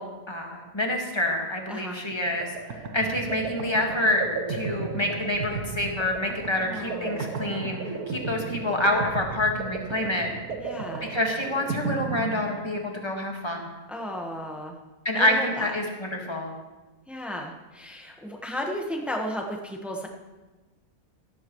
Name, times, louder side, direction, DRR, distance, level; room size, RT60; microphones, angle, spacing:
voice 1, 0.0-4.2 4.5-10.3 11.1-13.7 15.1-16.5, left 1 dB, 20° left, 1 dB, 1.7 m, -27 dB
voice 2, 1.7-2.0 6.6-7.4 10.6-11.1 13.9-14.8 15.1-15.7 17.1-20.1, equal, ahead, 1 dB, 1.1 m, -34 dB
sound 1, 2.1-13.0, right 4 dB, 80° right, 1.5 m, -34 dB
15.0 x 14.0 x 3.1 m, 1.2 s
omnidirectional pair, 1.6 m